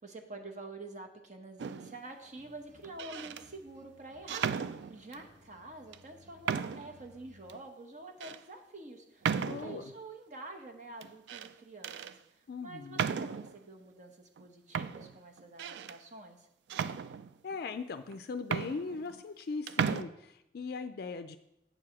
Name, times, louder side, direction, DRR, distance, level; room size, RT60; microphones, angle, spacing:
voice 1, 0.0-16.5, right 2 dB, 45° right, 5 dB, 0.9 m, -48 dB
sound 1, 1.6-2.0 2.8-3.4 4.3-5.3 5.9-6.0 6.5-7.0 7.5-7.6 8.2-8.4 9.2-9.9 11.0-11.5 11.8-12.1 12.9-13.6 14.4-14.5 14.7-16.0 16.7-17.6 18.1-18.2 18.4-19.4 19.7-20.0, right 7 dB, 70° right, 0.3 m, -35 dB
sound 2, 2.2-7.5, left 1 dB, 85° right, 1.4 m, -62 dB
voice 2, 9.4-9.8 12.5-13.1 17.4-21.4, left 4 dB, 55° left, 9 dB, 0.4 m, -39 dB
7.9 x 4.8 x 5.9 m, 0.85 s
head